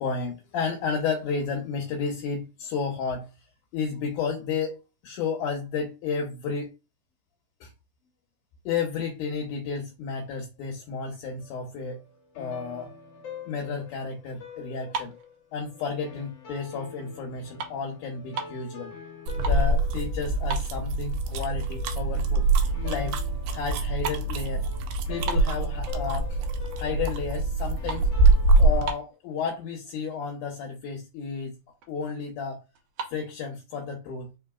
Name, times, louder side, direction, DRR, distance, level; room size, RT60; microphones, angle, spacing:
voice 1, 0.0-3.3 3.7-4.8 5.0-6.7 7.6-7.7 8.7-12.0 12.4-12.9 13.5-15.2 15.5-18.9 19.4-22.5 22.8-23.2 23.5-24.7 25.1-26.4 26.8-28.1 28.6-31.5 31.9-32.6 33.1-34.3, left 5 dB, 75° left, 2.3 m, -32 dB
sound 1, 11.4-28.8, left 5 dB, 55° left, 2.2 m, -46 dB
sound 2, 14.8-16.2 16.6-16.9 17.2-18.7 19.1-19.7 20.0-20.1 20.4-21.3 21.7-21.8 22.4-22.5 22.8-23.1 23.4-26.2 26.6-27.1 27.4-29.3 30.0-30.1 30.3-30.6 31.0-31.1 31.3-32.0 32.8-33.2, right 5 dB, 75° right, 2.3 m, -38 dB
sound 3, 19.3-28.9, right 2 dB, 90° right, 2.3 m, -24 dB
5.1 x 3.8 x 2.3 m
omnidirectional pair, 3.8 m